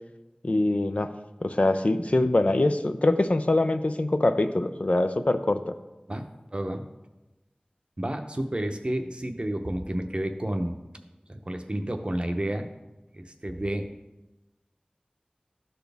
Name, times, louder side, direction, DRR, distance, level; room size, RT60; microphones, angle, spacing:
voice 1, 0.4-1.1 1.4-5.7, left 2 dB, 55° left, 8 dB, 0.5 m, -24 dB
voice 2, 6.5-6.8 8.0-10.8 11.3-12.7 13.1-13.9, right 1 dB, 40° right, 5 dB, 0.7 m, -30 dB
12.5 x 4.2 x 3.4 m, 1.0 s
wide cardioid pair, 45°, 3 cm